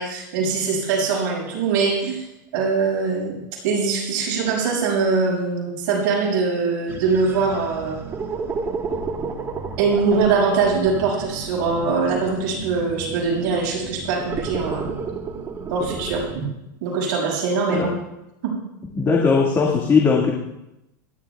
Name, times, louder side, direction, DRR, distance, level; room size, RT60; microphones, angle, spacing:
voice 1, 0.0-2.2 2.5-3.3 3.6-8.0 9.8-14.9 15.7-16.5 16.8-17.9 18.4-18.5, right 4 dB, 60° right, -3 dB, 6.3 m, -22 dB
sound 1, 6.9-16.4, right 4 dB, 25° right, 1.5 m, -32 dB
voice 2, 18.9-20.3, left 5 dB, 25° left, -2 dB, 2.0 m, -18 dB
28.5 x 11.5 x 2.4 m, 0.90 s
supercardioid pair, 135°, 11 cm